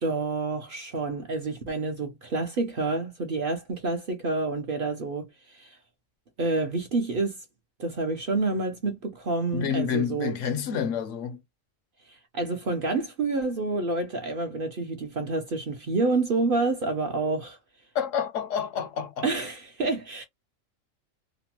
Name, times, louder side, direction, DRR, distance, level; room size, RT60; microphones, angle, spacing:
voice 1, 0.0-5.8 6.4-7.4 7.8-10.4 12.1-17.6 19.2-20.2, right 3 dB, 55° right, 0.7 m, -28 dB
voice 2, 9.5-11.4 17.9-19.3, left 7 dB, 70° left, 0.9 m, -29 dB
2.9 x 2.1 x 2.9 m
omnidirectional pair, 1.4 m